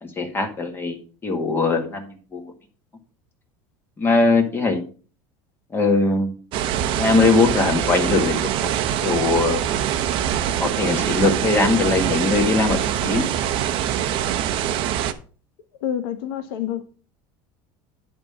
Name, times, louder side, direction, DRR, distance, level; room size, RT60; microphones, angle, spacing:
voice 1, 0.0-2.5 4.0-4.8 5.7-6.3 7.0-8.7 9.0-9.6 10.6-13.2, left 3 dB, 20° left, 1.7 m, -21 dB
sound 1, 6.5-15.1, right 10 dB, 50° right, 0.8 m, -24 dB
voice 2, 15.8-16.9, left 10 dB, 90° left, 1.3 m, -27 dB
10.5 x 3.7 x 5.6 m
cardioid pair, 145°, 11 cm